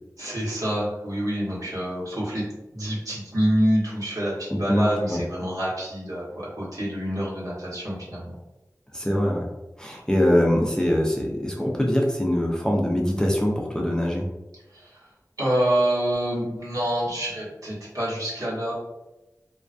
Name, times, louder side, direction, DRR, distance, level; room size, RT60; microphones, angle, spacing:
voice 1, 0.2-2.4 2.7-8.3 14.7-15.0 15.4-18.7, equal, 60° right, -7 dB, 1.1 m, -27 dB
voice 2, 4.5-5.2 8.9-9.5 9.8-14.2, equal, 10° left, -1 dB, 0.4 m, -23 dB
2.2 x 2.2 x 2.4 m, 1.0 s
wide cardioid pair, 60°, 7 cm